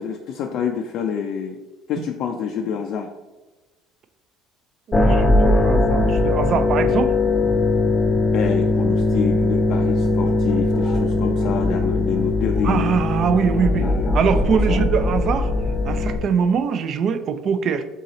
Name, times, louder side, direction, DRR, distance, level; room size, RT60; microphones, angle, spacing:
voice 1, 0.0-1.6 1.9-3.1 8.3-12.9 13.7-14.1 14.7-14.8, left 8 dB, 60° left, 3 dB, 0.3 m, -27 dB
sound 1, 4.9-16.2, left 2 dB, 20° left, 0.6 m, -20 dB
voice 2, 4.9-7.1 12.6-13.9 14.1-15.5 15.8-17.8, right 6 dB, 50° right, 10 dB, 0.4 m, -22 dB
3.7 x 2.8 x 3.9 m, 1.1 s
supercardioid pair, 95°, 0 cm